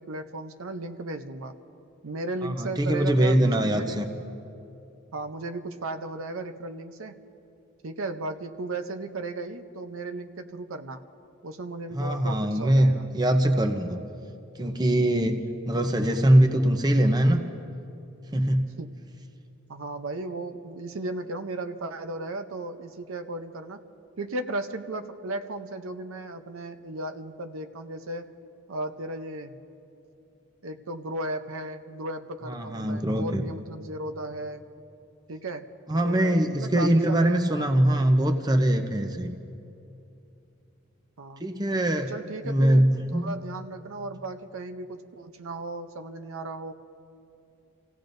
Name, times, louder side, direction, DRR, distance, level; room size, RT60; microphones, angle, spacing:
voice 1, 0.0-1.6 2.0-4.1 5.1-7.2 7.8-11.0 11.4-13.1 18.8-18.9 19.7-23.8 24.2-28.3 28.7-29.5 30.6-34.6 35.3-37.6 41.2-41.4 42.1-46.7, right 2 dB, 85° right, 8 dB, 0.7 m, -35 dB
voice 2, 2.4-4.1 11.9-14.0 14.6-15.4 15.7-17.4 18.3-18.6 32.5-33.4 35.9-39.3 41.4-42.1 42.4-43.3, right 1 dB, 20° right, 4 dB, 0.7 m, -22 dB
29.0 x 16.0 x 2.6 m, 2.7 s
head